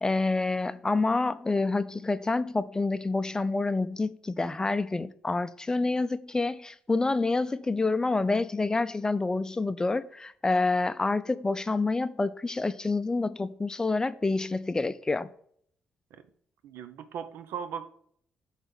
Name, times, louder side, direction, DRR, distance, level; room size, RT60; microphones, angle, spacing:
voice 1, 0.0-15.3, left 3 dB, 20° left, 0.4 m, -28 dB
voice 2, 16.6-17.9, right 7 dB, 85° right, 0.6 m, -38 dB
5.5 x 4.0 x 6.0 m
cardioid pair, 85°, 4 cm